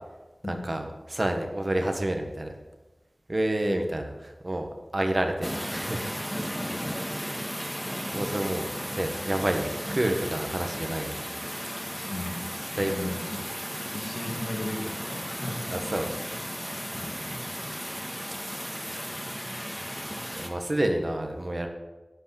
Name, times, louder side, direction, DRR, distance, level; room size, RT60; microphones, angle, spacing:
voice 1, 0.5-2.5 3.3-4.7 4.9-6.1 7.0-7.5 8.1-8.7 9.0-11.2 12.7-13.1 15.7-16.1 20.0-21.7, right 1 dB, 45° right, 4 dB, 1.6 m, -29 dB
sound 1, 5.4-20.5, equal, 5° right, 1.6 m, -35 dB
voice 2, 12.1-12.4 12.7-13.4 13.9-15.9 16.9-17.2, left 1 dB, 55° left, -1 dB, 2.6 m, -36 dB
11.5 x 5.5 x 8.8 m, 1.1 s
wide cardioid pair, 55°, 0 cm